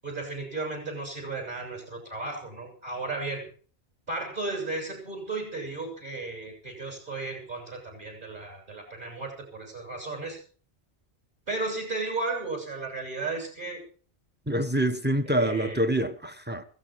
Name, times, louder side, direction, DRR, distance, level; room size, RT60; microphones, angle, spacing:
voice 1, 0.0-3.5 4.1-10.4 11.5-13.8 15.3-15.8, right 3 dB, 45° right, 7.4 m, -34 dB
voice 2, 14.5-16.6, right 1 dB, 10° right, 1.0 m, -26 dB
16.5 x 15.0 x 4.6 m
omnidirectional pair, 1.1 m